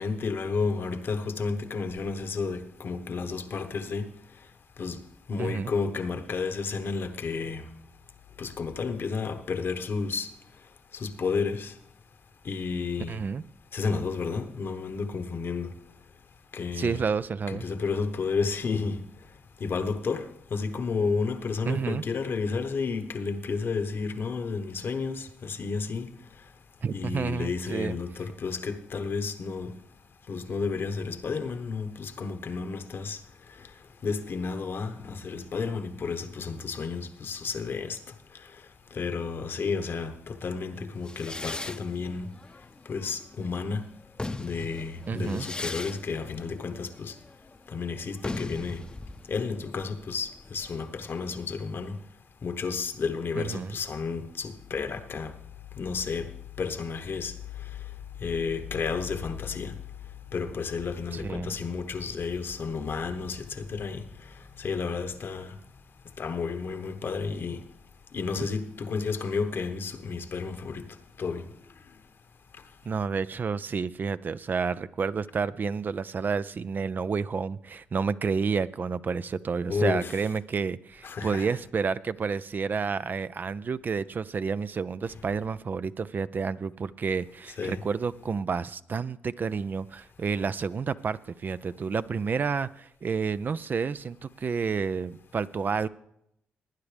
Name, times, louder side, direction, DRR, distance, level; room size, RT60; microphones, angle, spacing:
voice 1, 0.0-4.1 4.8-5.0 5.3-7.7 8.4-10.3 10.9-11.7 12.4-13.2 13.7-15.7 16.5-17.1 17.5-19.0 19.6-20.3 20.5-26.1 26.9-29.7 30.3-33.2 34.0-38.0 38.9-42.3 42.9-43.8 44.4-47.1 47.7-48.9 49.3-51.9 52.4-55.3 55.8-56.3 56.6-57.3 58.2-59.7 60.3-64.0 64.6-65.5 66.2-67.6 68.1-70.9 71.2-71.4 79.7-80.1 81.0-81.5 87.6-87.8, left 5 dB, 60° left, 1.2 m, -31 dB
voice 2, 5.4-5.7 13.1-13.4 16.7-17.6 21.7-22.0 26.8-28.0 45.1-45.5 53.3-53.7 61.1-61.5 68.4-68.5 72.9-95.9, right 5 dB, 45° right, 0.4 m, -30 dB
sound 1, 41.0-43.5 44.0-51.5, left 2 dB, 20° left, 0.7 m, -39 dB
18.5 x 9.5 x 3.4 m
supercardioid pair, 55°, 4 cm